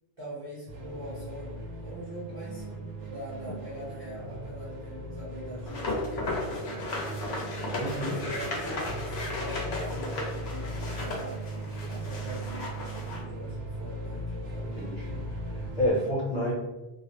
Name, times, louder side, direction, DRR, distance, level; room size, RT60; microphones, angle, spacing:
voice 1, 0.2-2.7 3.0-6.9 7.8-11.4 11.9-14.9, equal, 35° right, -8 dB, 0.7 m, -42 dB
sound 1, 0.7-15.9, right 1 dB, 65° right, 0.8 m, -38 dB
sound 2, 5.7-13.2, left 2 dB, 70° left, 0.8 m, -35 dB
voice 2, 7.8-8.2 14.8-15.3 15.5-16.5, left 1 dB, 40° left, -8 dB, 0.9 m, -29 dB
2.3 x 2.0 x 2.9 m, 1.1 s
omnidirectional pair, 1.2 m